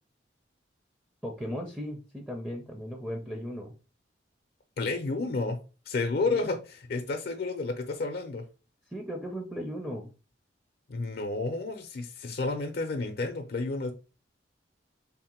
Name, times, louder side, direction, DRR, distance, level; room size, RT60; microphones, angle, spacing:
voice 1, 1.2-3.7 6.3-6.4 8.9-10.1, equal, 5° right, 2 dB, 0.5 m, -36 dB
voice 2, 4.8-5.6 5.9-6.6 6.9-8.4 10.9-13.9, left 3 dB, 60° left, 5 dB, 0.5 m, -31 dB
3.6 x 2.1 x 4.3 m, 0.32 s
head